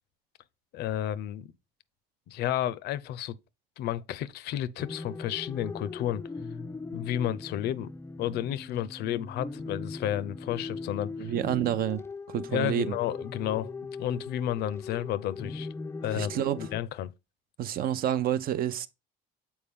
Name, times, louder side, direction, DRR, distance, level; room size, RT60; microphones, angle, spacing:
voice 1, 0.7-1.5 2.3-3.3 3.8-6.2 6.9-7.9 8.2-11.3 12.5-15.7 16.0-17.1, left 11 dB, 75° left, 0.5 m, -32 dB
sound 1, 4.8-16.8, left 4 dB, 15° left, 0.3 m, -40 dB
voice 2, 11.2-12.0 12.3-12.9 16.1-16.7 17.6-18.9, right 10 dB, 60° right, 0.6 m, -29 dB
7.0 x 4.4 x 3.6 m
cardioid pair, 110°, 17 cm